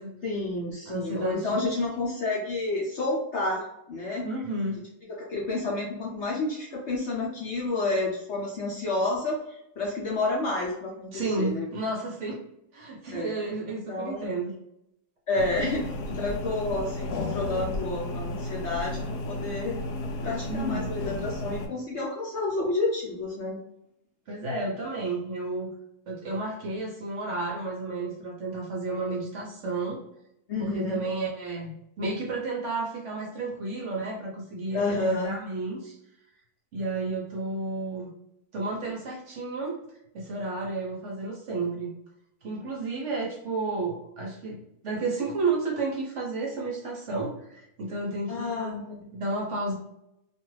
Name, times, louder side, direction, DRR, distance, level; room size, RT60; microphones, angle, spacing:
voice 1, 0.2-4.2 5.1-11.6 13.1-13.3 13.9-14.3 15.3-19.7 20.2-23.6 30.5-31.0 34.7-35.4 48.3-49.1, left 2 dB, 60° left, -3 dB, 0.8 m, -30 dB
voice 2, 0.9-1.6 4.2-4.8 11.1-12.4 12.7-14.5 20.5-20.9 24.3-25.7 26.1-30.0 30.6-35.9 36.7-38.1 38.5-39.8 40.1-41.9 42.4-48.7 49.0-49.7, right 3 dB, 60° right, -2 dB, 0.8 m, -32 dB
sound 1, 15.4-21.7, left 2 dB, 85° left, 1.1 m, -33 dB
2.6 x 2.3 x 3.1 m, 0.82 s
omnidirectional pair, 1.7 m